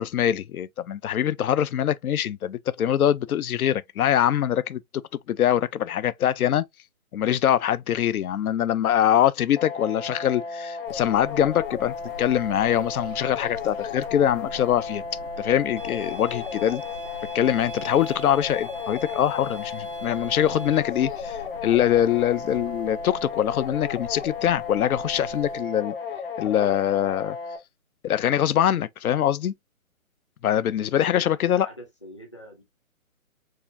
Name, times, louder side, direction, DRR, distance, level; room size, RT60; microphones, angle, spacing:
voice 1, 0.0-4.8 5.3-6.6 7.1-15.0 15.4-16.8 17.3-26.0 26.4-27.4 28.0-29.5 30.4-31.7, left 10 dB, 85° left, 0.5 m, -23 dB
sound 1, 9.6-27.6, left 5 dB, 40° left, 0.9 m, -34 dB
sound 2, 10.8-25.6, left 2 dB, 65° left, 1.3 m, -44 dB
sound 3, 15.8-20.8, equal, 40° right, 0.4 m, -43 dB
voice 2, 30.9-32.6, equal, 20° left, 0.6 m, -44 dB
4.7 x 2.4 x 2.6 m
hypercardioid pair, 175°, 42 cm